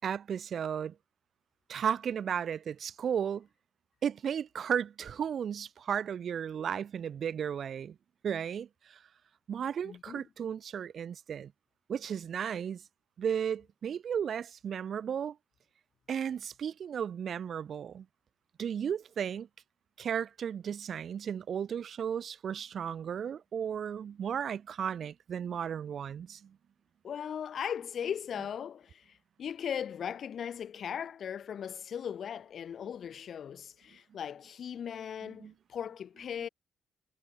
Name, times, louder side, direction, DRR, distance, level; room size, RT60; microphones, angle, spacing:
voice 1, 0.0-0.9 1.7-3.5 4.0-7.9 8.2-9.0 9.5-11.5 11.9-12.8 13.2-15.4 16.1-18.0 18.6-19.5 20.0-26.5 35.4-35.5, right 8 dB, 40° right, 4.1 m, -34 dB
voice 2, 9.8-10.2 27.0-36.5, left 8 dB, 40° left, 5.9 m, -38 dB
cardioid pair, 180°, 0 cm